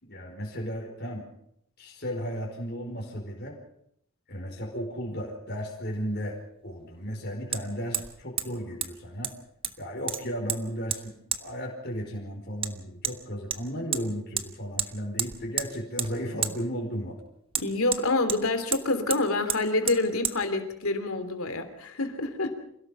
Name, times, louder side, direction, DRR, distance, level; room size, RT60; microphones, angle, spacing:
voice 1, 0.0-1.3 1.8-3.6 4.3-6.4 6.6-9.3 9.8-17.2, equal, 45° left, 0 dB, 4.9 m, -34 dB
Hammer, 5.6-5.7 7.5-7.6 7.9-8.1 8.4-8.5 8.8-8.9 9.2-9.8 10.1-10.6 10.9-11.0 11.3-11.4 12.6-12.7 13.0-13.2 13.5-14.0 14.4-14.5 14.8-14.9 15.2-15.7 16.0-16.1 16.4-16.5 17.5-18.4 18.7-18.8 19.1-19.2 19.5-19.6 19.9-20.0 20.2-20.4, right 7 dB, 25° right, 1.1 m, -30 dB
voice 2, 17.6-22.5, left 2 dB, 70° left, 8 dB, 3.1 m, -27 dB
27.5 x 17.5 x 5.6 m, 0.72 s
head